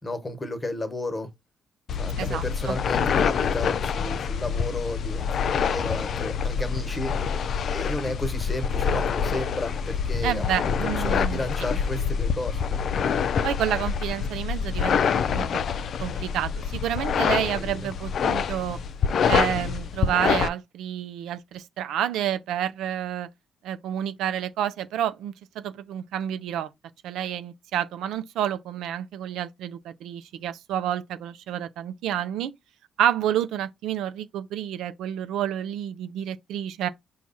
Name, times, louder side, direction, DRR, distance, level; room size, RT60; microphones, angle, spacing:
voice 1, 0.0-1.3 1.9-7.4 7.7-12.8 17.4-17.9, left 1 dB, 20° left, 1.2 m, -33 dB
sound 1, 1.9-20.5, left 6 dB, 60° left, 0.5 m, -26 dB
voice 2, 2.2-2.8 10.2-11.4 13.4-15.6 16.0-18.8 19.2-23.3 23.6-26.7 27.0-32.5 33.0-36.9, right 10 dB, 85° right, 0.5 m, -29 dB
4.6 x 2.3 x 4.2 m
cardioid pair, 90°, 0 cm